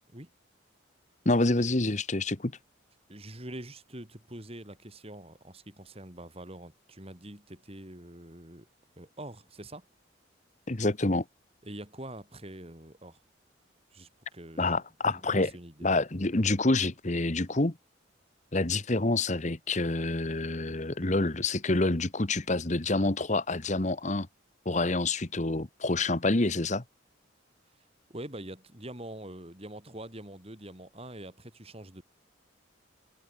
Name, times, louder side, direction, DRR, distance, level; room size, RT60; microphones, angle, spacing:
voice 1, 1.2-2.5 10.7-11.2 14.6-15.5 15.8-17.8 18.5-24.3 24.6-26.8, left 2 dB, 35° left, 1.3 m, -27 dB
voice 2, 3.1-8.7 9.0-9.9 11.6-13.2 13.9-14.7 15.1-15.9 28.1-32.0, right 1 dB, 30° right, 4.1 m, -44 dB
head